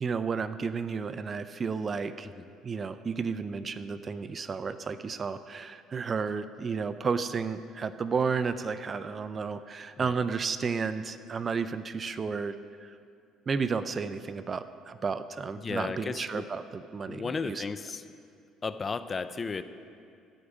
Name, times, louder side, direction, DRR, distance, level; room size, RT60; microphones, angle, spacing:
voice 1, 0.0-2.3 2.6-12.6 12.8-12.9 13.5-17.6, right 5 dB, 35° right, 13 dB, 0.4 m, -32 dB
voice 2, 15.6-16.4 17.1-18.0 18.6-19.6, left 4 dB, 30° left, 12 dB, 0.5 m, -34 dB
13.0 x 4.9 x 8.4 m, 2.3 s
cardioid pair, 105°, 0 cm